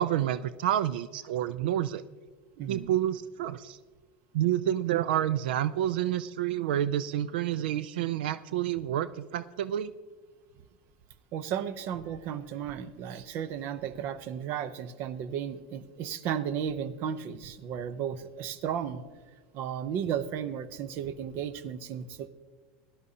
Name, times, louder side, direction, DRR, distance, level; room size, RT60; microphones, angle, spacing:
voice 1, 0.0-2.0 2.7-3.8 4.3-9.9, right 11 dB, 90° right, 16 dB, 0.3 m, -29 dB
voice 2, 2.6-3.0 11.3-19.0 19.5-22.3, right 8 dB, 45° right, 14 dB, 0.6 m, -34 dB
17.0 x 11.5 x 2.8 m, 1.4 s
supercardioid pair, 150°, 5 cm